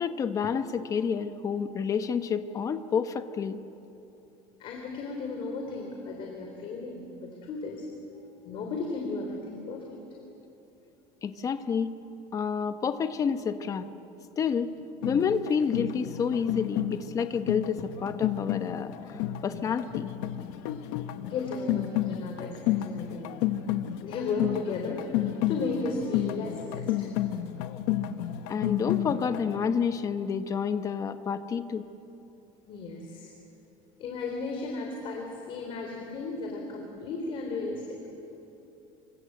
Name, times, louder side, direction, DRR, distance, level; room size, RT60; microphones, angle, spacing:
voice 1, 0.0-3.6 11.2-11.9 12.3-13.9 14.4-14.7 15.0-20.1 28.5-31.9, left 6 dB, 25° left, 10 dB, 0.9 m, -29 dB
voice 2, 4.6-7.9 8.4-10.0 21.2-23.3 24.0-27.1 32.7-33.3 34.0-38.0, left 3 dB, 40° left, 1 dB, 3.3 m, -35 dB
sound 1, 15.0-29.6, left 12 dB, 85° left, 1.2 m, -31 dB
28.0 x 24.5 x 7.8 m, 3.0 s
cardioid pair, 175°, 14 cm